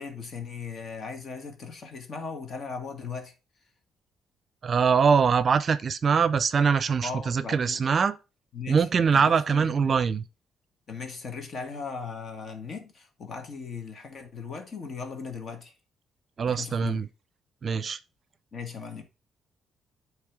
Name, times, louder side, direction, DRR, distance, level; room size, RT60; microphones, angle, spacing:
voice 1, 0.0-3.3 7.0-7.8 8.5-9.9 10.9-15.7 16.5-17.0 18.5-19.0, left 5 dB, 50° left, 1.7 m, -38 dB
voice 2, 4.6-8.2 8.7-10.2 16.4-17.1 17.6-18.0, right 6 dB, 45° right, 0.5 m, -23 dB
8.6 x 3.4 x 4.7 m
cardioid pair, 90°, 0 cm